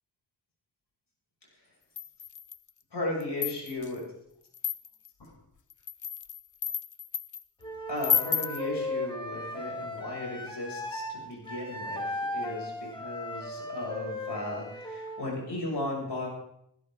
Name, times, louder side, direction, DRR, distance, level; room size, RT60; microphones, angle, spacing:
sound 1, 2.0-2.7 3.2-3.9 4.5-5.1 5.7-7.4 8.0-8.6, left 7 dB, 45° left, 0.7 m, -31 dB
voice 1, 2.9-4.0 5.2-5.3 7.6-16.3, left 2 dB, 75° left, -3 dB, 7.4 m, -36 dB
Wind instrument woodwind instrument, 7.6-11.2 11.4-15.3, left 1 dB, 10° left, 3.1 m, -37 dB
18.0 x 15.5 x 4.0 m, 0.75 s
wide cardioid pair, 65°, 41 cm